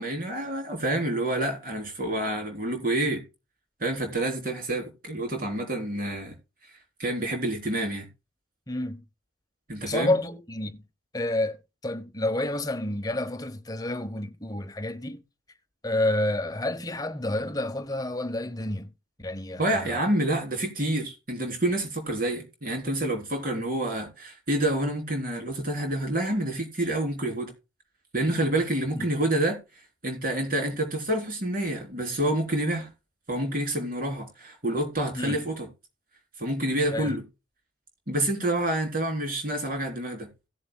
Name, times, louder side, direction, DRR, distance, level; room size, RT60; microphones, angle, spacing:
voice 1, 0.0-3.2 3.8-6.3 7.0-8.1 9.7-10.1 19.6-27.5 28.1-29.6 30.0-32.9 33.3-35.7 36.4-37.2 38.1-40.3, right 1 dB, 45° right, 3.9 m, -28 dB
voice 2, 8.7-9.0 9.8-10.8 11.1-15.2 15.8-18.9 19.2-20.0 28.9-29.0 35.1-35.4 36.9-37.1, left 1 dB, 20° left, 1.0 m, -29 dB
17.5 x 7.5 x 2.3 m
head